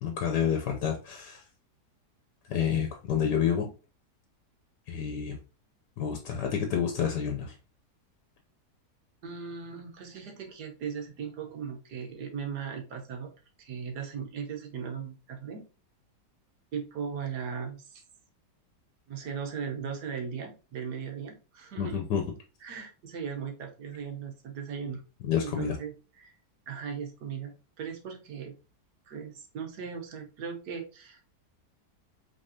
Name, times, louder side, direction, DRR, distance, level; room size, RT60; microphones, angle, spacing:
voice 1, 0.0-1.4 2.5-3.7 4.9-5.4 6.0-7.5 21.8-22.2 25.2-25.8, left 8 dB, 80° left, 3 dB, 1.4 m, -29 dB
voice 2, 9.2-13.3 13.6-15.6 16.7-18.0 19.1-22.0 22.6-25.0 25.4-26.3 26.7-28.5 29.1-31.2, right 6 dB, 75° right, 3 dB, 1.5 m, -38 dB
5.2 x 3.4 x 2.7 m, 0.34 s
omnidirectional pair, 1.8 m